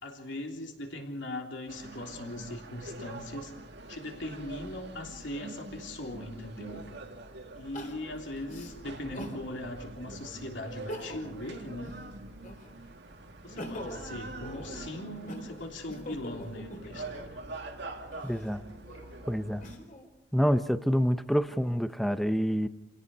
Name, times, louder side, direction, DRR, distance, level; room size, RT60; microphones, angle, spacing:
voice 1, 0.0-3.5 3.9-6.8 7.5-12.0 13.4-17.4, left 1 dB, 60° left, 2 dB, 3.3 m, -40 dB
sound 1, 1.7-19.8, right 2 dB, 55° right, 1.8 m, -45 dB
Crying sobbing, 7.7-9.4 10.0-10.1 10.7-11.4 11.8-12.8 13.3-17.3 18.0-20.1 20.6-21.4, left 1 dB, 40° left, 3.9 m, -44 dB
voice 2, 18.2-18.6 19.3-19.6 20.3-22.7, equal, ahead, 11 dB, 0.7 m, -27 dB
29.0 x 17.5 x 5.5 m, 0.96 s
head